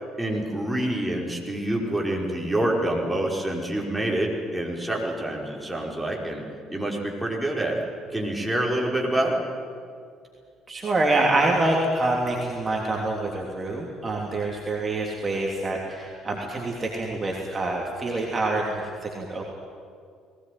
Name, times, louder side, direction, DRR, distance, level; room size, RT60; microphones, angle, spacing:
voice 1, 0.2-6.4 6.7-7.8 8.1-9.4, right 1 dB, 10° right, -2 dB, 5.2 m, -27 dB
voice 2, 10.7-19.5, right 2 dB, 30° right, -1 dB, 3.2 m, -26 dB
20.0 x 17.0 x 9.6 m, 2.3 s
hypercardioid pair, 50°, 0 cm